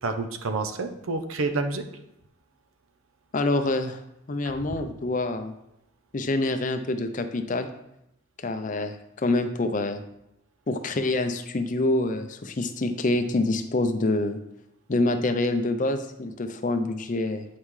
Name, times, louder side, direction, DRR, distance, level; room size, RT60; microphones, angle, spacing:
voice 1, 0.0-1.9 4.4-4.8, right 3 dB, 80° right, 7 dB, 0.7 m, -29 dB
voice 2, 3.3-4.0 4.3-5.5 6.1-7.7 8.4-10.0 10.7-14.4 14.9-17.5, left 2 dB, 40° left, 8 dB, 0.5 m, -26 dB
8.3 x 5.5 x 3.2 m, 0.85 s
head